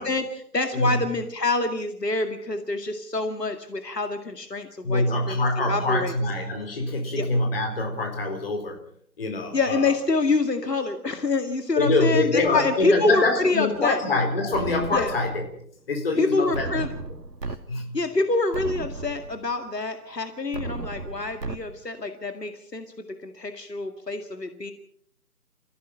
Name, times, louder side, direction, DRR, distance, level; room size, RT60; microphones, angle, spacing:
voice 1, 0.0-6.1 7.2-7.3 9.5-14.0 14.9-15.1 16.2-16.9 17.9-24.7, left 3 dB, 70° left, 7 dB, 2.2 m, -26 dB
voice 2, 0.7-1.0 4.8-8.8 9.2-9.9 11.8-15.6 15.9-16.8 17.7-18.0, left 2 dB, 35° left, 4 dB, 4.5 m, -25 dB
sound 1, 14.5-15.5 16.5-17.6 18.0-18.1 18.5-19.5 20.5-21.6, right 3 dB, 70° right, 2.2 m, -34 dB
29.5 x 16.0 x 5.7 m, 0.62 s
figure-of-eight pair, 155°, 50 cm